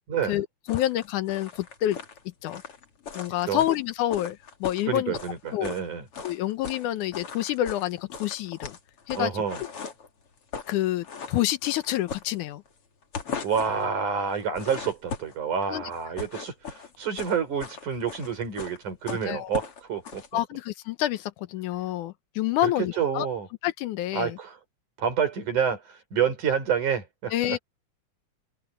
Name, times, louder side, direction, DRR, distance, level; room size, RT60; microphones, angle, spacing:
voice 1, 0.3-2.0 2.4-2.6 3.1-5.2 5.5-5.7 6.2-8.8 9.1-9.4 10.7-12.6 15.7-15.8 19.1-19.5 20.3-23.3 23.6-24.4 27.3-27.6, left 14 dB, 85° left, 2.4 m, -28 dB
sound 1, 0.7-5.9 6.1-6.8 7.1-10.1 10.4-10.8 11.0-12.7 13.0-13.8 14.3-15.4 15.9-20.3, left 5 dB, 50° left, 3.2 m, -38 dB
voice 2, 4.9-6.0 9.2-9.6 13.4-20.2 22.6-22.7 23.0-23.5 24.1-24.6 25.0-27.6, right 7 dB, 80° right, 6.5 m, -28 dB
omnidirectional pair, 3.5 m